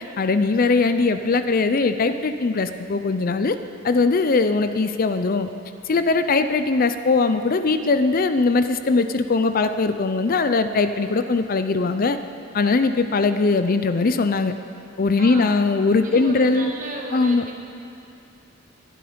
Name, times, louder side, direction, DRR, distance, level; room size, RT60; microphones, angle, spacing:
voice 1, 0.0-3.6 3.8-5.5 5.9-12.2 12.5-14.5 15.0-16.7 17.1-17.4, left 3 dB, 40° left, 10 dB, 0.5 m, -20 dB
voice 2, 15.2-15.5 16.0-17.5, right 1 dB, 40° right, 0 dB, 1.8 m, -34 dB
21.5 x 11.5 x 5.1 m, 2.7 s
head